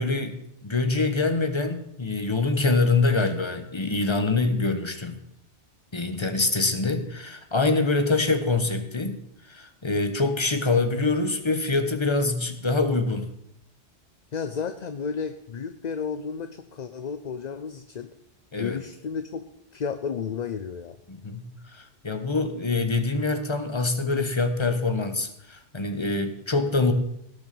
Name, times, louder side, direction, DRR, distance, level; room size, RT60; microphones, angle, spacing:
voice 1, 0.0-5.2 5.9-9.2 9.4-13.3 18.5-18.8 21.1-26.9, left 3 dB, 25° left, 8 dB, 1.4 m, -25 dB
voice 2, 14.3-18.1 18.6-19.4 19.7-21.0, left 6 dB, 45° left, 10 dB, 0.7 m, -32 dB
17.0 x 6.6 x 6.9 m, 0.75 s
omnidirectional pair, 1.2 m